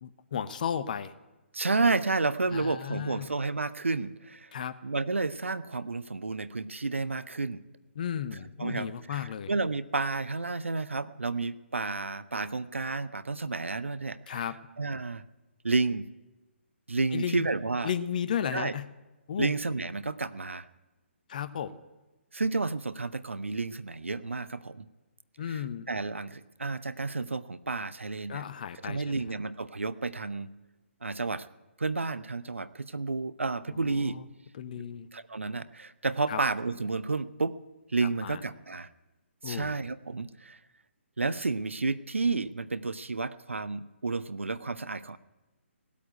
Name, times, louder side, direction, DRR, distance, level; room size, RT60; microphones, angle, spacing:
voice 1, 0.0-1.1 2.5-3.3 4.5-4.7 8.0-9.5 14.3-14.5 17.1-17.4 17.8-18.8 19.3-19.5 21.3-21.8 25.4-25.9 28.3-29.2 33.7-34.2 34.6-35.1 36.3-36.4 38.2-38.4 39.4-39.8, left 8 dB, 40° left, 13 dB, 0.9 m, -34 dB
voice 2, 1.5-4.5 4.8-7.6 8.6-14.5 14.8-15.2 15.6-16.1 16.9-17.9 18.5-18.7 19.4-20.7 22.3-24.9 25.5-28.4 28.8-30.5 31.0-31.5 31.8-34.2 34.8-34.9 35.1-37.6 37.9-38.9 39.4-40.6 41.2-45.2, right 3 dB, 70° right, 15 dB, 0.7 m, -31 dB
17.5 x 8.4 x 9.3 m, 1.1 s
figure-of-eight pair, 135°, 7 cm